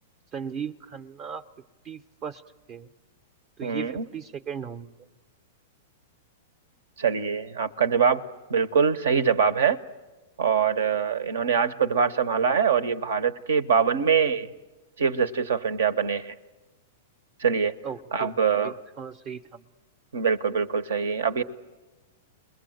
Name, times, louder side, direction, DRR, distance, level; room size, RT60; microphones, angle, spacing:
voice 1, 0.3-1.5 1.8-2.4 2.7-2.9 3.6-4.9 17.8-18.4 18.6-19.6, right 7 dB, 40° right, 9 dB, 0.7 m, -37 dB
voice 2, 3.6-4.0 7.0-8.2 8.5-9.8 10.4-14.5 15.0-16.3 17.4-17.8 18.1-18.7 20.1-21.4, right 6 dB, 80° right, 13 dB, 0.9 m, -23 dB
29.5 x 21.0 x 7.9 m, 1.2 s
hypercardioid pair, 115°, 0 cm